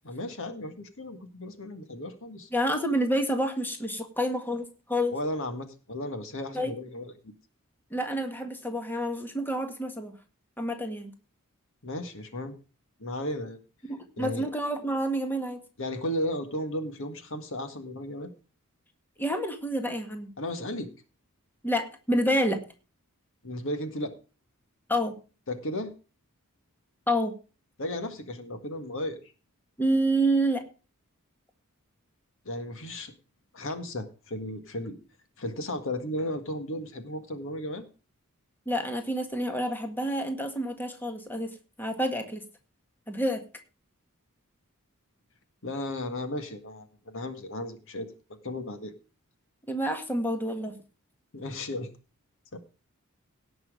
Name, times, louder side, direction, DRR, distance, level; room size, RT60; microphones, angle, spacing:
voice 1, 0.0-2.5 5.1-7.3 11.8-12.5 13.0-13.6 14.2-14.4 15.8-18.3 20.4-20.9 23.4-24.1 25.5-25.9 27.8-29.2 32.4-33.1 33.5-35.0 35.4-37.9 45.6-48.1 48.4-48.9 51.3-51.9 52.5-52.6, left 1 dB, 60° left, 8 dB, 1.8 m, -34 dB
voice 2, 2.5-5.1 6.5-6.7 7.9-10.1 10.6-11.1 13.9-15.6 19.2-20.3 21.6-22.6 24.9-25.1 27.1-27.3 29.8-30.6 38.6-42.4 43.1-43.4 49.7-50.8, equal, 10° left, 5 dB, 1.8 m, -28 dB
17.5 x 6.2 x 5.0 m, 0.34 s
head